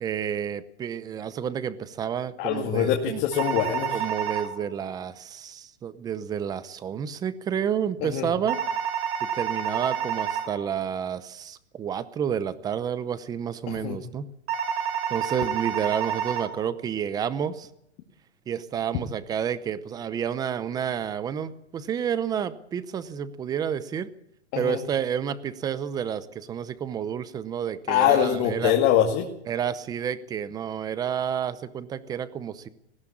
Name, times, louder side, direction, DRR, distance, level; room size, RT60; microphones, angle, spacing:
voice 1, 0.0-3.2 3.9-8.6 9.3-14.3 15.1-17.7 18.5-24.1 24.5-28.7 29.5-32.7, right 8 dB, 10° right, 15 dB, 0.7 m, -30 dB
voice 2, 2.4-4.0 8.0-8.3 13.7-14.0 24.5-24.8 27.9-29.3, left 10 dB, 30° left, 1 dB, 2.2 m, -23 dB
sound 1, 3.3-4.5 8.5-10.5 14.5-16.5, right 8 dB, 60° right, 4.6 m, -28 dB
19.5 x 15.5 x 8.6 m, 0.77 s
hypercardioid pair, 155°, 35 cm